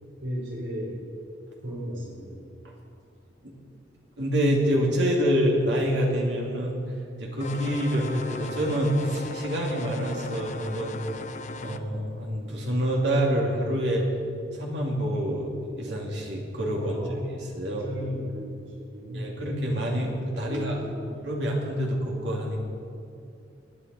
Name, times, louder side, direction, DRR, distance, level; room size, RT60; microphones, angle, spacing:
voice 1, 0.2-0.9 1.6-2.5 16.8-17.4 17.6-19.4 20.4-21.1, equal, 85° right, -5 dB, 3.5 m, -35 dB
voice 2, 4.2-6.8 7.2-11.0 11.6-14.1 14.6-17.9 19.1-20.8 21.2-22.6, equal, 65° right, -1 dB, 2.4 m, -27 dB
sound 1, 7.4-11.8, left 4 dB, 40° left, 0.5 m, -38 dB
19.5 x 9.3 x 4.1 m, 2.5 s
head